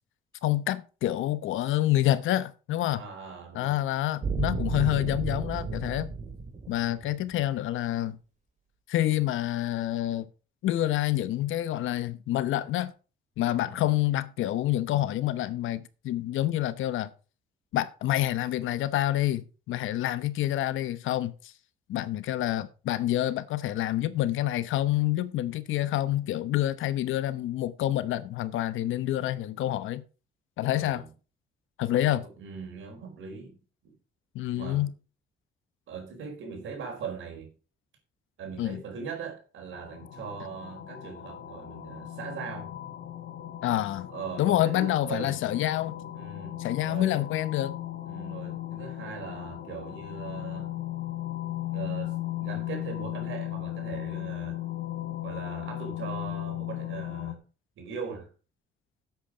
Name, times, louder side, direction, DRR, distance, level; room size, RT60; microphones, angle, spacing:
voice 1, 0.4-3.0 3.5-6.1 6.7-8.2 8.9-10.3 10.6-12.9 13.4-17.1 17.7-21.5 21.9-30.0 30.6-31.0 31.8-32.2 34.3-34.9 38.6-38.8 43.6-44.1 44.4-46.0 46.6-47.8, left 14 dB, 85° left, 1.0 m, -27 dB
voice 2, 2.9-3.8 13.6-14.0 30.7-31.1 32.0-33.6 33.8-33.9 34.5-34.9 35.9-37.5 38.4-42.7 44.1-45.4 46.1-46.6 46.8-47.2 48.0-50.7 51.7-54.6 55.2-57.4 57.8-58.3, right 6 dB, 75° right, 4.5 m, -40 dB
sound 1, 4.2-7.4, right 4 dB, 40° right, 2.3 m, -33 dB
sound 2, 39.7-57.3, left 13 dB, 50° left, 1.4 m, -37 dB
10.0 x 8.1 x 4.9 m
cardioid pair, 90°, 20 cm